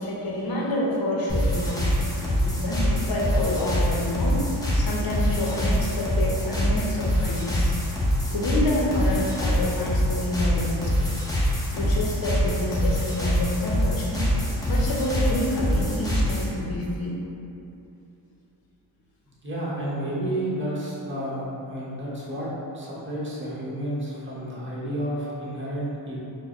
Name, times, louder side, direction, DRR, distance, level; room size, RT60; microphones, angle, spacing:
voice 1, 0.0-4.4 4.7-7.7 8.3-11.1 11.7-14.2 14.6-17.2, left 1 dB, 50° left, -3 dB, 0.8 m, -28 dB
sound 1, 1.3-16.5, equal, 10° left, 0.7 m, -25 dB
voice 2, 19.4-22.5 22.7-26.2, right 1 dB, 25° right, -7 dB, 1.0 m, -31 dB
4.6 x 2.2 x 2.9 m, 2.8 s
cardioid pair, 100°, 46 cm